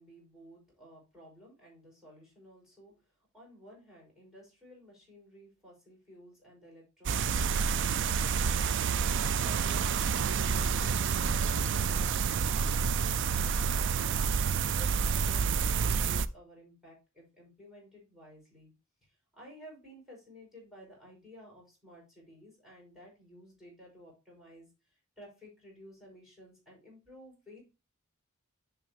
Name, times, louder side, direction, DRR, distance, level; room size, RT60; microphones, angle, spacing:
voice 1, 0.0-2.9 3.3-18.7 19.0-27.6, equal, ahead, -4 dB, 5.5 m, -54 dB
sound 1, 7.1-16.3, right 6 dB, 60° right, 0.4 m, -28 dB
10.5 x 5.9 x 2.8 m, 0.29 s
head